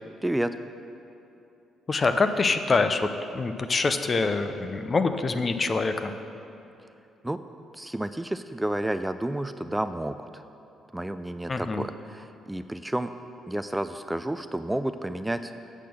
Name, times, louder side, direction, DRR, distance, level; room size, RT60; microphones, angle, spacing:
voice 1, 0.2-0.6 7.2-7.4 7.7-10.4 10.9-13.1 13.5-15.5, right 1 dB, 10° right, 10 dB, 0.4 m, -30 dB
voice 2, 1.9-6.1 11.5-11.8, left 3 dB, 35° left, 8 dB, 0.6 m, -25 dB
8.3 x 6.0 x 6.9 m, 2.8 s
hypercardioid pair, 45°, 0 cm